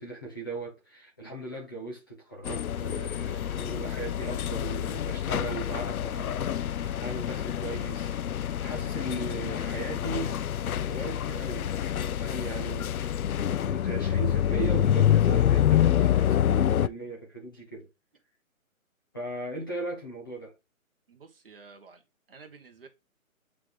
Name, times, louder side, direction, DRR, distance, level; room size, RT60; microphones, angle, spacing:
voice 1, 0.0-10.5 10.8-17.9 19.1-20.5, right 2 dB, 15° left, 1.0 m, -38 dB
sound 1, 2.5-16.9, left 10 dB, 80° left, 0.6 m, -27 dB
voice 2, 21.1-22.9, right 4 dB, 40° right, 1.5 m, -51 dB
8.8 x 3.8 x 3.7 m
hypercardioid pair, 175°, 43 cm